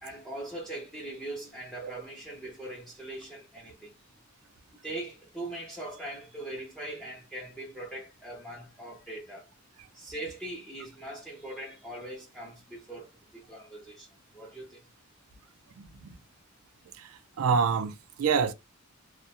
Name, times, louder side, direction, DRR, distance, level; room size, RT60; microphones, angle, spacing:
voice 1, 0.0-3.9 4.8-9.5 9.9-14.9, right 1 dB, ahead, 0.4 m, -41 dB
voice 2, 15.8-16.2 17.0-18.5, right 6 dB, 90° right, 0.4 m, -28 dB
2.2 x 2.1 x 2.7 m
head